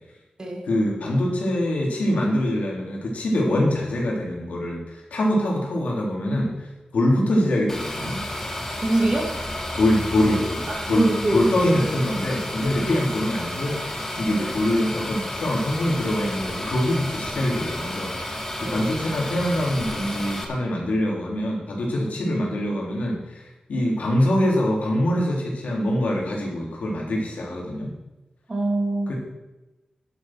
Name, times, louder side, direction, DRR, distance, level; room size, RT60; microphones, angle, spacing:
voice 1, 0.7-8.2 9.7-27.9 29.1-29.2, left 1 dB, 80° left, -2 dB, 3.8 m, -24 dB
sound 1, 7.7-20.4, left 1 dB, 15° left, 1.8 m, -32 dB
voice 2, 8.8-9.3 10.7-11.9 12.8-13.0 14.3-14.5 18.6-18.9 28.5-29.1, right 1 dB, 30° right, 0 dB, 2.7 m, -24 dB
11.0 x 8.2 x 6.3 m, 1.0 s
wide cardioid pair, 145°, 2 cm